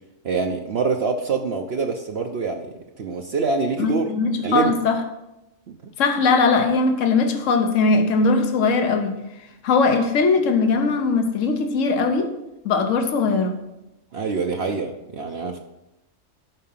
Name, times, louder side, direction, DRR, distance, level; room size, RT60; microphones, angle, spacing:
voice 1, 0.2-4.0 4.4-4.7 5.7-5.9 14.1-15.6, right 4 dB, 55° right, 3 dB, 0.9 m, -25 dB
voice 2, 3.8-5.0 6.0-9.2 9.6-12.3 12.6-13.5, left 4 dB, 70° left, 5 dB, 1.3 m, -20 dB
12.5 x 4.8 x 5.6 m, 0.93 s
omnidirectional pair, 1.4 m